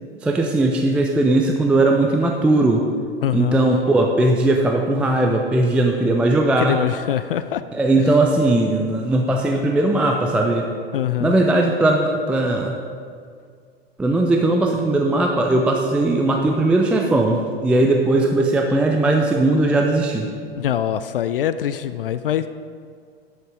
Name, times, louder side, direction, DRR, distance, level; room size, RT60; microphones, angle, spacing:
voice 1, 0.2-2.8 3.3-6.8 7.7-10.7 11.2-12.8 14.0-20.3, right 2 dB, 5° right, 1 dB, 0.3 m, -18 dB
voice 2, 3.2-3.6 6.6-7.6 10.9-11.3 20.6-22.5, left 10 dB, 60° left, 12 dB, 0.4 m, -23 dB
10.0 x 7.1 x 4.9 m, 2.2 s
figure-of-eight pair, 90°, 31 cm